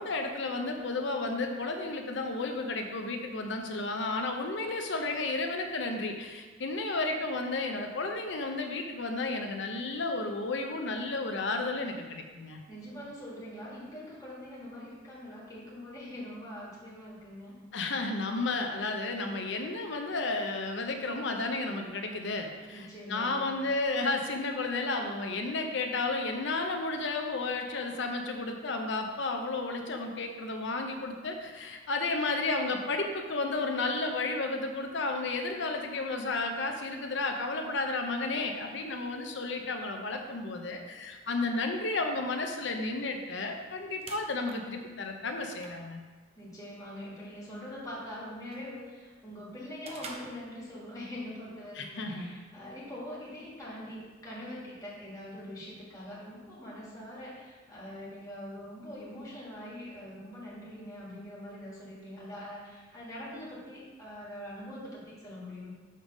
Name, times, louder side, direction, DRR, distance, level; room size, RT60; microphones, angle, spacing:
voice 1, 0.0-12.6 17.7-46.0 51.7-52.3, left 3 dB, 65° left, 4 dB, 0.7 m, -32 dB
voice 2, 12.7-17.6 22.7-23.5 46.4-65.7, left 1 dB, 20° left, -7 dB, 1.7 m, -43 dB
sound 1, 43.6-51.1, right 3 dB, 30° right, 0.6 m, -51 dB
6.5 x 3.5 x 5.2 m, 1.4 s
head